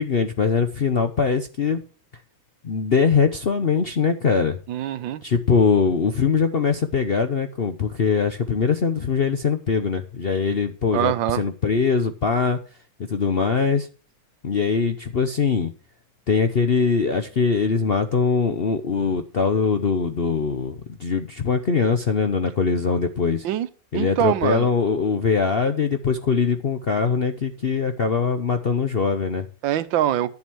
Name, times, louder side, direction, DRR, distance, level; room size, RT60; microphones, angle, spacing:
voice 1, 0.0-1.8 2.6-4.6 5.2-12.6 13.1-13.9 14.4-15.7 16.3-23.4 23.9-29.5, left 5 dB, 55° left, 8 dB, 0.6 m, -22 dB
voice 2, 4.7-5.2 10.9-11.4 23.4-23.7 23.9-24.7 29.6-30.4, right 11 dB, 85° right, 14 dB, 1.6 m, -23 dB
11.0 x 7.2 x 6.1 m, 0.36 s
omnidirectional pair, 2.0 m